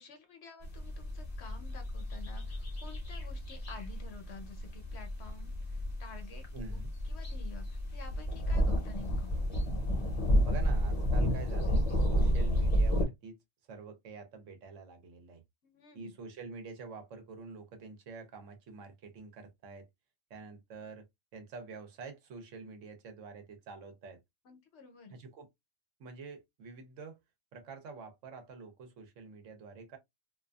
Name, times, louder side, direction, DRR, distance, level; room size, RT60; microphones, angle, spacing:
voice 1, 0.0-6.4 6.7-9.3 15.6-16.1 24.4-25.2, left 4 dB, 60° left, 1.0 m, -51 dB
sound 1, 0.6-13.0, equal, 35° left, 0.8 m, -31 dB
voice 2, 6.5-6.9 10.4-13.4 13.7-15.4 15.9-19.9 20.3-21.1 21.3-24.2 25.1-25.5 26.0-27.2 27.5-30.0, right 4 dB, 75° right, 1.1 m, -47 dB
2.6 x 2.4 x 2.2 m
omnidirectional pair, 1.3 m